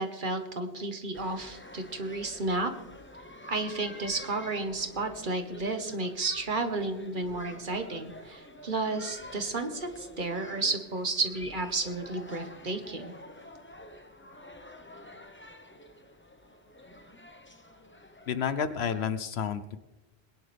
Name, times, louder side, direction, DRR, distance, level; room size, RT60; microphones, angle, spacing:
voice 1, 0.0-2.7 3.5-13.1, right 3 dB, 50° right, 7 dB, 1.4 m, -32 dB
sound 1, 1.1-19.0, left 1 dB, 10° left, 0.9 m, -48 dB
voice 2, 18.3-19.8, left 7 dB, 75° left, 12 dB, 1.0 m, -30 dB
21.5 x 10.5 x 3.4 m, 0.99 s
omnidirectional pair, 1.1 m